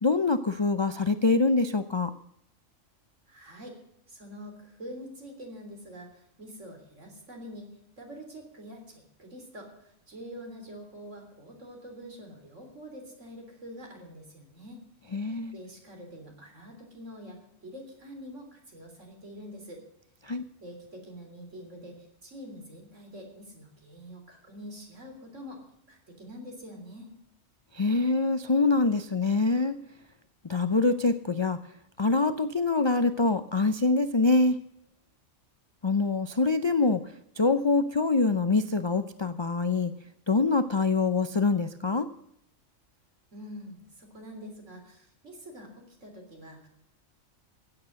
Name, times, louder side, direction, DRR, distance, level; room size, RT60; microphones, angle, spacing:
voice 1, 0.0-2.1 15.1-15.6 20.2-20.4 27.7-29.8 30.5-31.6 32.0-34.6 35.8-37.0 37.4-39.9 40.3-42.1, left 3 dB, 40° left, 11 dB, 0.4 m, -25 dB
voice 2, 3.3-3.7 4.1-7.7 8.0-14.8 15.2-19.8 20.6-27.1 43.3-46.7, equal, 70° right, 3 dB, 3.8 m, -45 dB
15.5 x 8.9 x 6.3 m, 0.76 s
omnidirectional pair, 1.3 m